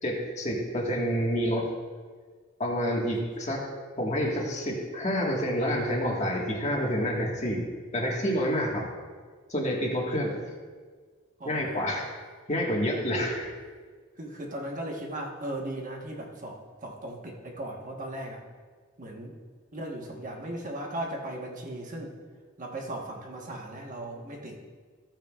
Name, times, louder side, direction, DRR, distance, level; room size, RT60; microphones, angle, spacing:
voice 1, 0.0-1.7 2.6-3.7 4.0-8.9 9.5-10.4 11.4-12.1 12.5-13.5, equal, 35° left, -2 dB, 1.7 m, -28 dB
voice 2, 11.4-11.9 14.2-18.4 19.0-19.3 19.7-22.1 22.6-24.6, right 1 dB, 40° right, 0 dB, 1.3 m, -37 dB
14.5 x 8.9 x 2.4 m, 1.5 s
head